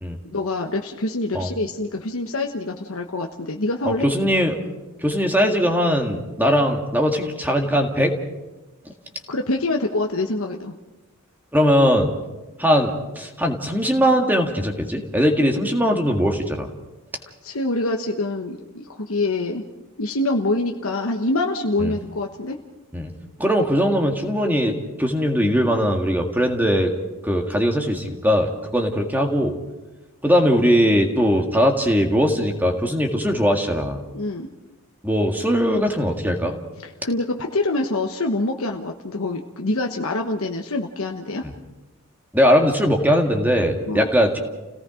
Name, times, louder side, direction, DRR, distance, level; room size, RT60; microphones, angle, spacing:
voice 1, 0.3-4.1 9.3-10.7 17.4-19.6 20.0-22.6 34.1-34.5 36.8-41.4 43.9-44.1, left 2 dB, 70° left, 2 dB, 1.2 m, -25 dB
voice 2, 4.0-4.6 5.0-8.2 11.5-12.2 12.6-16.7 21.8-21.9 22.9-23.1 23.4-26.9 27.2-29.6 30.2-34.0 35.0-36.6 41.4-41.5 42.3-44.4, equal, 10° right, 3 dB, 1.8 m, -20 dB
30.0 x 17.5 x 5.1 m, 1.1 s
head